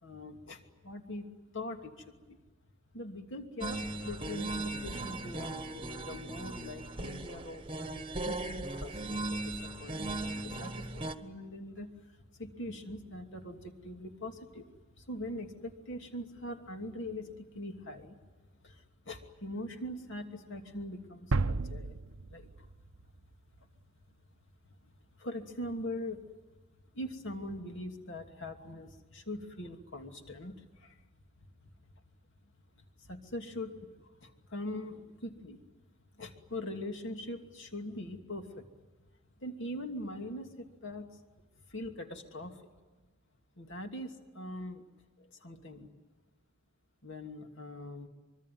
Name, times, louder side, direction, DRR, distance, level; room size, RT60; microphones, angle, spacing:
voice 1, 0.0-1.3 1.5-2.4 2.9-14.7 15.0-18.2 18.6-22.0 22.3-22.7 23.0-23.1 24.7-24.8 25.1-26.2 26.9-31.0 31.4-31.7 33.0-33.9 34.2-35.6 36.2-38.7 39.4-41.2 41.7-42.6 43.6-44.8 45.2-45.9 47.0-48.1, left 1 dB, 55° left, 4 dB, 2.8 m, -42 dB
sound 1, 3.6-11.1, right 2 dB, 25° right, 1.3 m, -38 dB
sound 2, 21.3-23.2, right 3 dB, 65° right, 0.8 m, -33 dB
25.0 x 24.0 x 9.4 m, 1.3 s
head